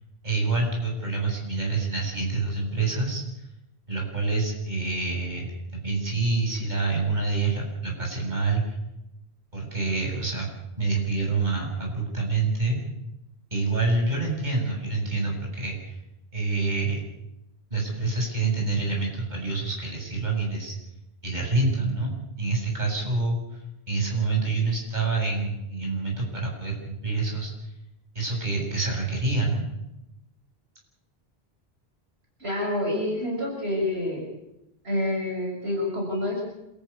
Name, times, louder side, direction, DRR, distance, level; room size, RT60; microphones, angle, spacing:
voice 1, 0.2-3.2 3.9-5.5 5.7-8.6 9.5-10.5 10.8-12.8 13.5-16.0 16.3-17.0 17.7-20.7 21.2-23.6 23.9-27.5 28.1-29.6, right 3 dB, 45° right, -1 dB, 7.8 m, -27 dB
voice 2, 32.4-34.2 34.8-36.4, left 1 dB, 70° right, -1 dB, 6.6 m, -27 dB
27.5 x 14.0 x 8.5 m, 0.91 s
omnidirectional pair, 1.1 m